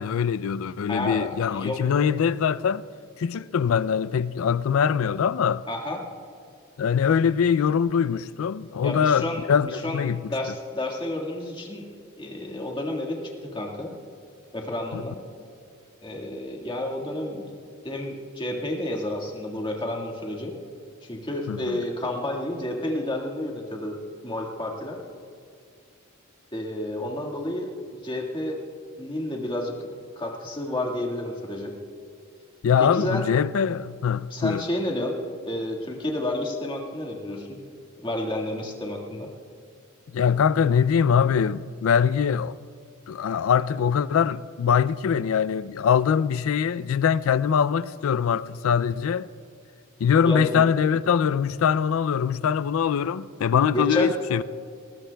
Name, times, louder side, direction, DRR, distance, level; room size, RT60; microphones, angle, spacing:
voice 1, 0.0-2.8 3.2-5.6 6.8-10.3 14.9-15.0 21.5-21.8 32.6-34.6 40.1-42.6 43.1-49.3 50.0-54.4, left 7 dB, 75° left, 0.4 m, -23 dB
voice 2, 0.9-1.8 5.7-6.0 8.8-10.0 10.3-11.9 12.2-13.9 14.5-15.2 16.0-17.5 17.8-20.5 21.0-24.0 24.2-25.0 26.5-27.7 28.0-28.6 29.0-29.9 30.2-31.7 32.8-33.2 34.3-35.2 35.5-37.6 38.0-39.3 50.2-50.7 53.7-54.1, left 1 dB, 25° left, 1.7 m, -30 dB
21.0 x 20.0 x 2.3 m
head